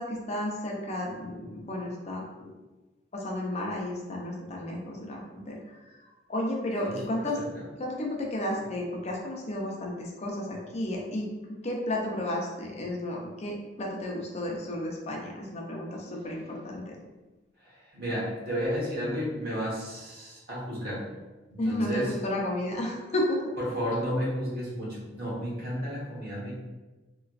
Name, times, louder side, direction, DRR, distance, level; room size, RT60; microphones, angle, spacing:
voice 1, 0.0-2.5 3.1-6.0 6.3-7.4 7.8-11.3 11.6-17.0 21.6-23.4, left 1 dB, 35° left, -1 dB, 0.5 m, -32 dB
voice 2, 17.6-21.0 21.5-22.1 23.6-26.5, equal, 60° right, -6 dB, 1.2 m, -32 dB
3.2 x 3.0 x 2.4 m, 1.2 s
head